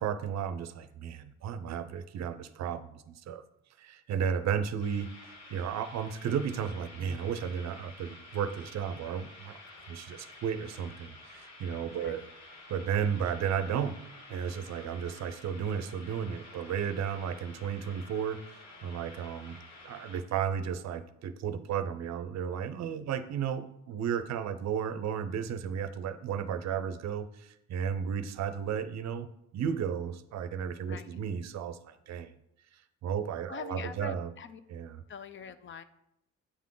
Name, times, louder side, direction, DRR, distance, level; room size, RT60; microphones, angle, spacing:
voice 1, 0.0-3.4 3.8-5.1 5.5-9.6 9.9-12.2 12.7-13.9 14.3-18.4 18.8-19.6 19.8-29.3 29.5-32.3 33.0-34.3 34.7-35.0, right 7 dB, 65° right, 12 dB, 0.5 m, -33 dB
sound 1, 4.8-20.2, left 2 dB, 60° left, 1.5 m, -51 dB
voice 2, 11.9-12.3 30.9-31.2 33.5-34.6 35.1-35.8, left 6 dB, 40° left, 12 dB, 0.4 m, -44 dB
8.2 x 3.7 x 3.8 m, 0.81 s
cardioid pair, 90°, 30 cm